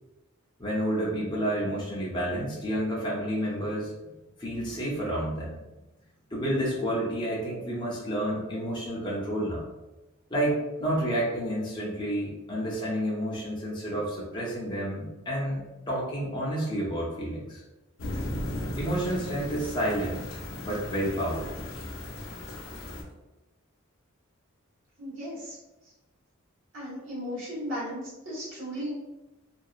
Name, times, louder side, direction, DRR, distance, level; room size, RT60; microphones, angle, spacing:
voice 1, 0.6-4.1 4.4-5.6 6.3-9.6 10.3-17.6 18.7-20.2 20.6-21.6, right 1 dB, 20° left, -5 dB, 0.6 m, -30 dB
sound 1, 18.0-23.0, left 1 dB, 70° left, 0.6 m, -36 dB
voice 2, 25.0-25.6 26.7-28.9, equal, 60° right, -7 dB, 1.3 m, -35 dB
2.7 x 2.3 x 2.4 m, 1.0 s
head